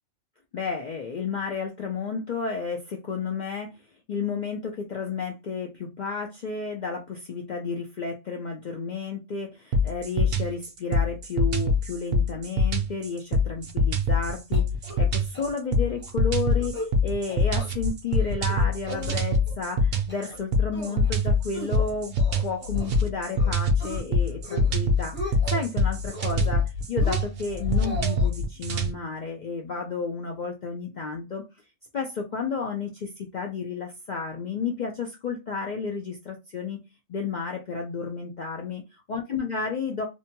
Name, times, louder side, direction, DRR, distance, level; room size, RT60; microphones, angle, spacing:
voice 1, 0.5-3.7 4.1-14.7 15.0-16.8 17.0-31.4 31.9-36.8 37.1-38.8 39.1-40.0, left 5 dB, 65° left, 1 dB, 0.4 m, -32 dB
sound 1, 9.7-28.9, left 2 dB, 60° right, 0.7 m, -24 dB
sound 2, 14.5-15.1 15.3-15.4 15.8-16.1 16.5-16.9 17.2-17.7 18.1-18.5 18.9-19.5 19.9-20.4 20.7-21.1 21.5-23.0 23.4-24.0 24.4-24.8 25.0-25.7 26.1-26.6 27.0-28.3, left 1 dB, 10° left, 0.6 m, -38 dB
2.7 x 2.1 x 2.7 m, 0.25 s
omnidirectional pair, 1.3 m